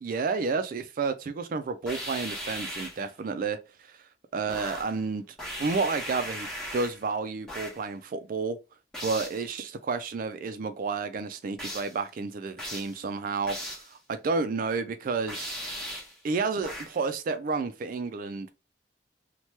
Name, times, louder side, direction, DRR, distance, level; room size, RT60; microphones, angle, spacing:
voice 1, 0.0-4.0 4.3-8.6 9.0-13.6 13.9-15.6 16.2-18.5, right 4 dB, 50° right, 0.3 m, -31 dB
sound 1, 1.9-3.1 4.5-5.0 5.4-7.1 7.5-7.9 8.9-9.5 11.6-12.0 12.6-13.0 13.5-13.9 15.3-16.2 16.6-17.0, equal, 5° left, 1.0 m, -38 dB
2.9 x 2.2 x 3.1 m
head